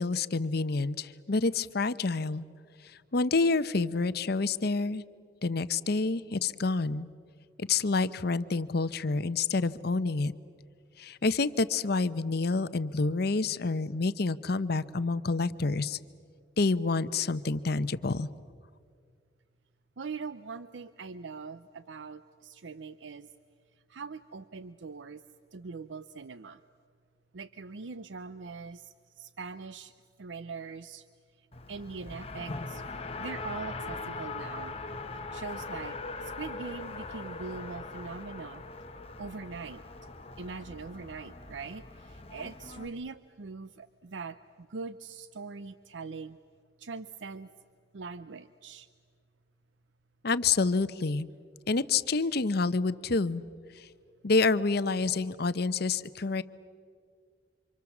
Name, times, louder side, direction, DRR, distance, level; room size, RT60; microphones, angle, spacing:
voice 1, 0.0-2.4 3.1-5.0 5.4-7.1 7.6-10.3 11.0-16.0 16.6-18.3 50.2-51.3 51.7-53.4 54.2-56.4, left 3 dB, 60° left, 14 dB, 0.8 m, -28 dB
voice 2, 20.0-23.3 23.9-25.2 25.5-26.6 27.3-29.9 30.2-31.1 31.7-32.8 33.2-34.7 35.3-38.6 39.2-39.8 40.4-46.4 46.8-47.5 47.9-48.9, right 4 dB, 85° right, 13 dB, 0.6 m, -42 dB
Race car auto racing, 31.5-42.9, left 3 dB, 35° left, 1.3 m, -41 dB
28.5 x 26.0 x 7.2 m, 2.1 s
head